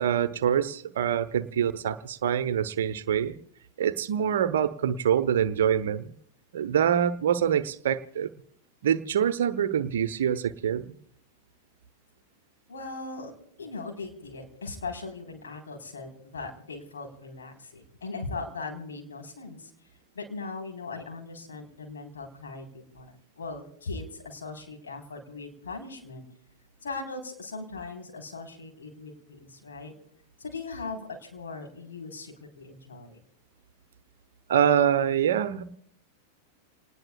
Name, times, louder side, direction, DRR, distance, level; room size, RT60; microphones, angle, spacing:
voice 1, 0.0-3.3 3.8-6.1 6.5-8.3 8.8-10.9 34.5-35.6, right 9 dB, 60° right, 11 dB, 0.9 m, -25 dB
voice 2, 12.7-13.3 13.6-19.7 20.1-22.7 22.9-26.2 26.8-29.9 30.4-33.2, left 3 dB, 70° left, 2 dB, 4.1 m, -39 dB
28.5 x 20.0 x 2.4 m, 0.67 s
figure-of-eight pair, 90°, 0 cm